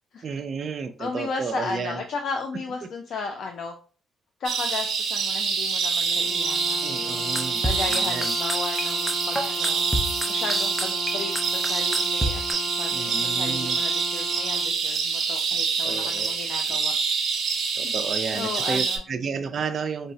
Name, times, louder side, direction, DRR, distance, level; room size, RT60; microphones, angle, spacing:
voice 1, 0.2-2.0 6.8-7.6 7.9-8.3 12.9-13.8 15.8-16.3 17.8-20.1, right 5 dB, 45° right, 7 dB, 0.3 m, -32 dB
voice 2, 1.0-3.7 4.4-9.9 10.3-17.0 17.8-17.9 18.3-19.1, left 4 dB, 65° left, 4 dB, 0.4 m, -35 dB
sound 1, 4.4-19.0, right 5 dB, 65° right, 0.7 m, -26 dB
Brass instrument, 6.0-14.8, left 2 dB, 40° left, 0.9 m, -37 dB
sound 2, 7.3-12.5, right 1 dB, ahead, 0.6 m, -27 dB
4.5 x 2.0 x 2.6 m, 0.39 s
cardioid pair, 90°, 0 cm